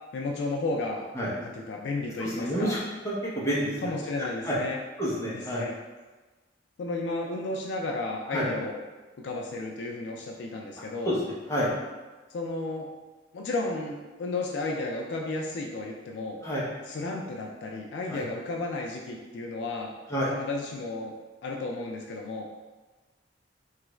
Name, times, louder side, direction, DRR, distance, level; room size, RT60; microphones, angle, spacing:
voice 1, 0.1-1.0 1.4-2.8 3.8-4.8 5.5-5.7 6.8-8.8 9.2-11.1 12.3-12.9 13.3-16.4 16.9-19.9 20.3-21.1 21.4-22.5, left 2 dB, 65° left, 0 dB, 0.3 m, -33 dB
voice 2, 2.2-3.8 4.2-4.6 5.0-5.7 8.3-8.5 11.1-11.2 11.5-11.7 16.4-16.6 18.1-18.2 20.1-20.3, equal, 15° left, -7 dB, 0.7 m, -29 dB
3.1 x 2.4 x 3.0 m, 1.2 s
head